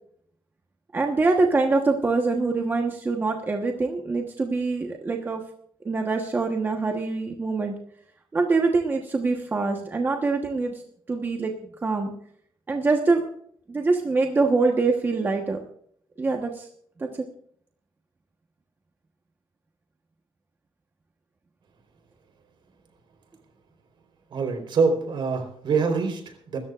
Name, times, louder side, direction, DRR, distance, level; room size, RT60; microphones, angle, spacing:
voice 1, 0.9-5.4 5.8-7.7 8.3-10.8 11.1-12.1 12.7-13.2 13.7-15.6 16.2-16.7 17.0-17.2, right 3 dB, 25° right, 2 dB, 1.2 m, -24 dB
voice 2, 24.3-26.6, right 4 dB, 60° right, 5 dB, 4.0 m, -25 dB
26.0 x 13.5 x 2.5 m, 0.63 s
wide cardioid pair, 180°, 9 cm